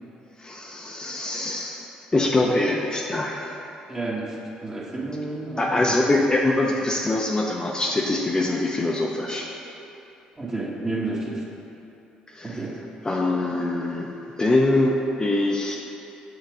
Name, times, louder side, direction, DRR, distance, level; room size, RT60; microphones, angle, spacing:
voice 1, 0.4-1.9 2.1-3.5 5.6-9.5 12.3-12.6 13.0-15.8, left 2 dB, 25° left, -1 dB, 0.6 m, -23 dB
voice 2, 3.9-4.4 4.6-6.0 10.4-11.4 12.4-12.7, right 2 dB, 20° right, -3 dB, 1.3 m, -30 dB
6.6 x 4.0 x 4.8 m, 2.8 s
supercardioid pair, 60°, 3 cm